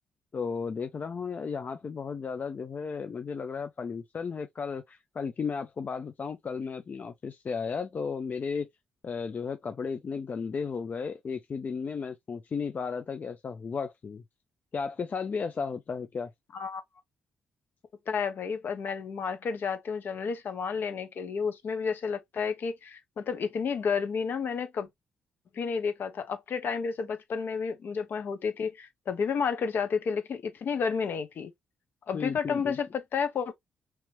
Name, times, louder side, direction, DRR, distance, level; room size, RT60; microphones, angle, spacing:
voice 1, 0.3-8.7 9.0-14.2 14.7-16.3 32.1-32.8, left 5 dB, 45° left, 0.4 m, -34 dB
voice 2, 18.1-24.9 25.5-31.5 32.1-33.5, left 6 dB, 60° left, 0.8 m, -31 dB
3.0 x 3.0 x 2.9 m
hypercardioid pair, 45°, 4 cm